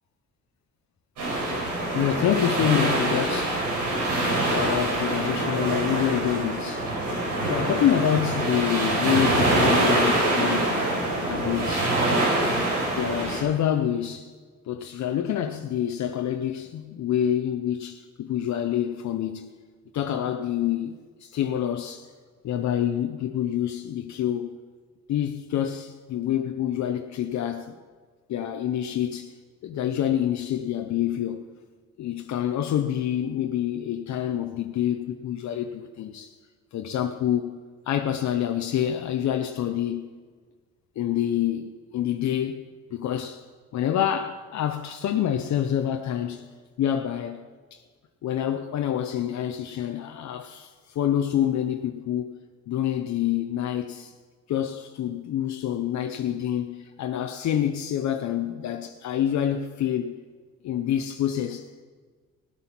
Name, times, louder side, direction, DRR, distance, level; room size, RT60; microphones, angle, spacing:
sound 1, 1.2-13.4, right 1 dB, 80° right, 4.9 m, -25 dB
voice 1, 1.9-3.6 4.4-6.9 7.4-10.8 11.3-12.0 13.0-14.3 14.7-19.6 19.9-20.9 21.2-22.1 22.4-24.6 25.1-27.7 28.3-29.3 29.6-31.4 32.0-36.3 36.7-37.6 37.9-40.1 41.0-42.6 42.9-43.4 43.7-46.5 46.8-47.8 48.2-52.3 52.7-54.1 54.5-60.2 60.6-61.7, left 10 dB, 65° left, 0.8 m, -27 dB
17.5 x 8.1 x 6.0 m
cardioid pair, 90°, 30 cm